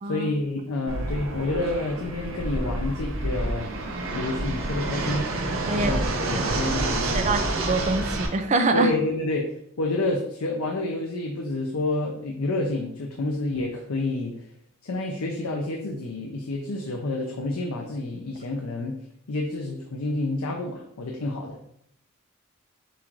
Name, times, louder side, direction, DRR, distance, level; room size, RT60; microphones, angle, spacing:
voice 1, 0.1-3.7 4.1-5.3 5.7-7.3 8.7-9.5 9.8-14.3 14.8-19.0 19.3-21.6, left 2 dB, 90° left, 1 dB, 0.6 m, -29 dB
Fixed-wing aircraft airplane, 0.9-8.3, right 2 dB, 70° right, 0.8 m, -28 dB
voice 2, 7.0-8.9, right 3 dB, 35° right, 7 dB, 0.4 m, -25 dB
6.8 x 2.5 x 3.1 m, 0.72 s
head